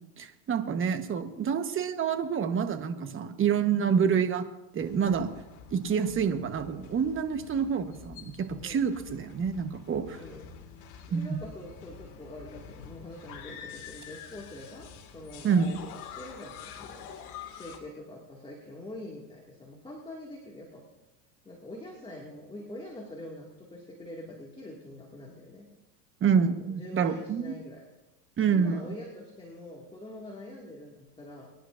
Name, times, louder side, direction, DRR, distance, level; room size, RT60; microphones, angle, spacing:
voice 1, 0.2-4.5 4.7-5.3 5.7-10.0 11.1-11.4 15.4-15.7 26.2-27.5 28.4-28.8, right 7 dB, 25° right, 8 dB, 1.2 m, -27 dB
sound 1, 4.8-17.8, left 7 dB, 50° left, 2.1 m, -47 dB
voice 2, 8.6-9.0 9.9-10.5 10.7-14.9 15.1-15.8 16.1-20.9 21.4-25.7 26.6-27.9 28.5-31.5, left 1 dB, 10° left, -2 dB, 2.1 m, -45 dB
24.5 x 11.0 x 2.6 m, 1.0 s
supercardioid pair, 115°, 49 cm